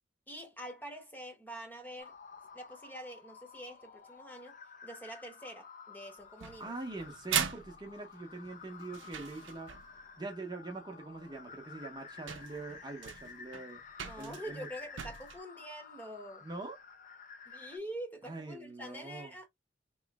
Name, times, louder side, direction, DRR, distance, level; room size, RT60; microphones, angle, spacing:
voice 1, 0.3-2.1 2.5-4.6 4.8-6.7 14.0-16.5 17.5-19.5, right 1 dB, 10° left, 1.0 m, -45 dB
sound 1, 2.0-17.8, left 5 dB, 45° left, 0.7 m, -52 dB
sound 2, 6.4-10.0 11.3-11.4 12.0-12.1 12.3-15.4, right 8 dB, 70° right, 0.6 m, -39 dB
voice 2, 6.6-13.8 14.2-14.7 16.4-16.8 18.2-19.3, right 3 dB, 25° right, 0.8 m, -44 dB
3.1 x 3.0 x 3.4 m
head